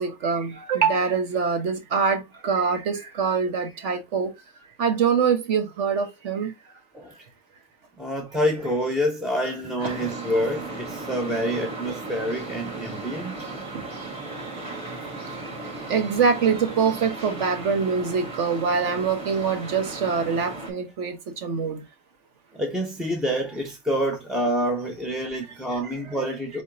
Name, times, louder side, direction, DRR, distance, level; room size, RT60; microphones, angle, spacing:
voice 1, 0.0-4.3 4.8-6.5 9.8-10.0 15.9-21.8, right 6 dB, 55° right, 1.1 m, -24 dB
voice 2, 8.0-13.5 15.1-15.2 22.5-26.6, equal, ahead, 0.3 m, -27 dB
sound 1, 9.8-20.7, right 2 dB, 20° right, 1.3 m, -36 dB
4.4 x 3.5 x 2.8 m
supercardioid pair, 165°, 30 cm